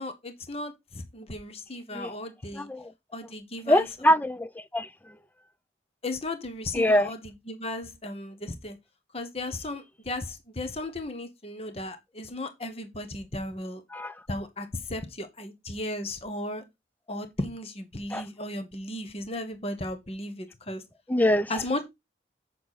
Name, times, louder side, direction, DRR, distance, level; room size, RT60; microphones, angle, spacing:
voice 1, 0.0-2.7 3.1-3.9 6.0-7.2 7.5-8.8 9.1-13.8 14.3-16.6 17.1-20.8 21.5-21.9, left 1 dB, 35° left, 1.2 m, -35 dB
voice 2, 2.5-2.9 3.7-5.2 6.7-7.1 13.9-14.2 18.1-18.2 21.1-21.6, left 1 dB, 10° left, 0.4 m, -24 dB
8.1 x 6.9 x 4.1 m
head